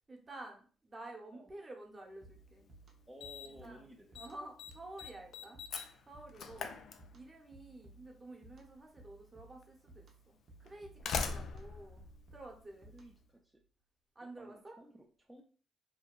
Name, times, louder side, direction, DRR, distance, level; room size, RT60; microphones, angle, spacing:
voice 1, 0.1-2.7 3.6-5.6 6.0-6.8 7.1-12.0 12.3-12.9 14.1-14.9, right 2 dB, 25° right, 1 dB, 0.8 m, -51 dB
sound 1, 2.2-13.4, right 3 dB, 60° right, 0.6 m, -60 dB
Slam, 2.4-2.5 3.2-3.7 3.9-4.3 4.6-7.5 8.6-8.7 9.6-9.7 10.6-13.0, left 5 dB, 70° left, 0.3 m, -41 dB
voice 2, 3.1-4.1 6.6-6.7 12.9-13.6 14.2-15.4, right 1 dB, 5° right, -1 dB, 0.4 m, -55 dB
2.8 x 2.2 x 2.2 m, 0.41 s
cardioid pair, 90°, 0 cm